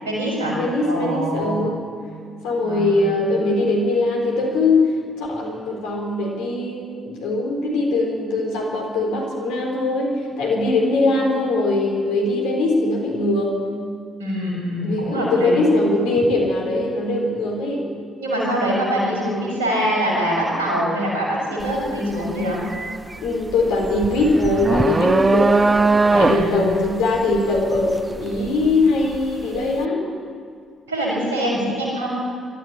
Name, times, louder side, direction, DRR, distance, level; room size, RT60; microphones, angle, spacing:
voice 1, 0.0-0.6 0.9-1.7 2.6-2.9 3.3-3.4 14.2-15.7 18.2-22.6 26.1-26.7 30.9-32.1, equal, 85° right, -4 dB, 6.4 m, -24 dB
voice 2, 0.5-1.8 2.4-13.6 14.8-17.9 23.2-30.1, left 2 dB, 70° left, 0 dB, 4.0 m, -21 dB
sound 1, 21.6-21.9 22.2-29.2, right 3 dB, 30° right, 0.9 m, -20 dB
20.5 x 14.0 x 9.1 m, 2.1 s
figure-of-eight pair, 40°, 0 cm